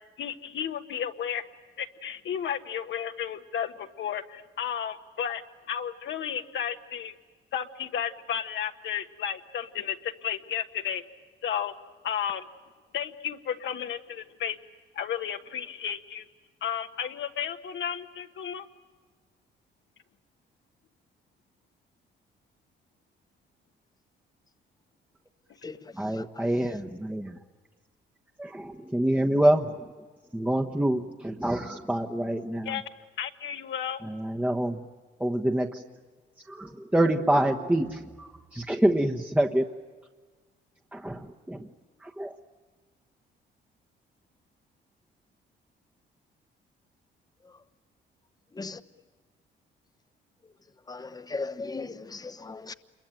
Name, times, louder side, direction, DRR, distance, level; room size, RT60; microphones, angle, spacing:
voice 1, 0.2-1.4 1.8-5.4 5.7-7.1 7.5-11.0 11.4-11.7 12.0-12.4 12.9-14.6 14.9-16.2 16.6-18.7 32.6-32.8 33.2-34.0, left 9 dB, 70° left, 1.5 m, -33 dB
voice 2, 26.0-27.3 28.4-29.7 30.3-32.7 34.2-34.8 35.2-35.8 36.5-39.7 40.9-41.2 41.5-41.6 42.2-42.3, right 1 dB, 5° right, 1.2 m, -26 dB
voice 3, 50.9-52.7, left 3 dB, 20° left, 1.1 m, -37 dB
27.5 x 22.5 x 9.1 m
cardioid pair, 90°, 20 cm